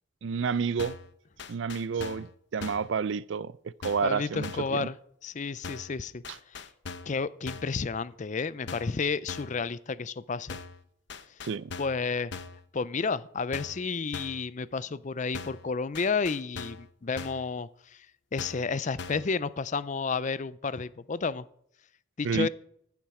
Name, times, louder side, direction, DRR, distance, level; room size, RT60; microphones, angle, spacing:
voice 1, 0.2-1.0 1.5-3.5 3.8-4.9 6.3-6.4 11.4-11.7 22.2-22.5, right 6 dB, 60° right, 0.4 m, -30 dB
sound 1, 0.8-1.1 1.4-2.3 2.6-2.9 3.8-4.1 4.4-4.8 5.6-6.0 6.2-7.2 7.5-7.8 8.7-9.0 9.3-9.6 10.5-10.8 11.1-12.0 12.3-12.6 13.5-13.9 14.1-14.5 15.3-15.7 16.0-16.9 17.2-17.5 18.4-18.7 19.0-19.3, left 4 dB, 55° left, 0.8 m, -41 dB
voice 2, 4.0-5.0 5.2-6.6 7.1-10.6 11.8-12.3 12.7-18.1 18.3-21.5 22.2-22.5, left 4 dB, 35° left, 0.5 m, -31 dB
15.0 x 7.2 x 4.9 m
head